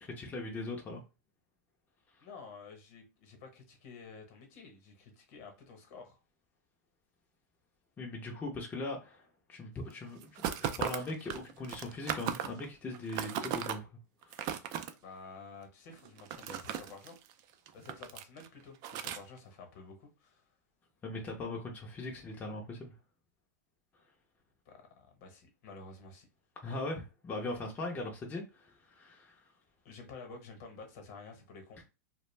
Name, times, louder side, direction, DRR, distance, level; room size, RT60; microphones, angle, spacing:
voice 1, 0.2-1.0 8.0-9.2 9.5-13.9 14.3-14.5 21.0-22.9 26.6-29.4, left 2 dB, 20° left, 0.5 m, -40 dB
voice 2, 2.2-6.2 15.0-17.2 17.7-20.5 24.7-26.3 29.8-31.8, left 4 dB, 55° left, 0.9 m, -51 dB
sound 1, 10.2-12.7 12.9-13.8 14.2-14.9 15.9-17.3 17.7-18.5 18.8-19.2, right 9 dB, 40° right, 0.4 m, -36 dB
2.3 x 2.1 x 3.1 m
hypercardioid pair, 130°, 9 cm